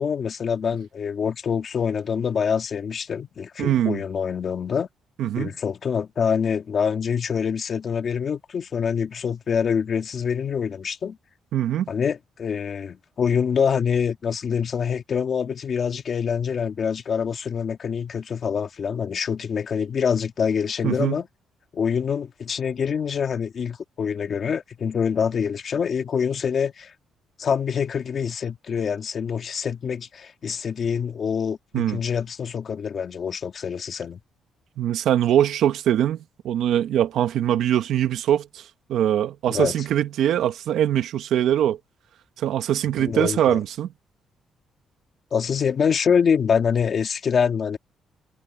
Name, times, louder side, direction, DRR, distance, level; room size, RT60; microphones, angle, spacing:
voice 1, 0.0-4.9 5.4-11.2 11.9-21.3 21.7-26.9 27.4-34.2 39.5-39.8 43.0-43.6 45.3-47.8, left 7 dB, 40° left, 1.8 m, -25 dB
voice 2, 3.6-4.0 5.2-5.5 11.5-11.9 20.8-21.2 31.7-32.0 34.8-36.2 36.4-38.6 38.9-41.8 42.4-43.9, right 11 dB, 70° right, 1.6 m, -22 dB
cardioid pair, 150°, 0 cm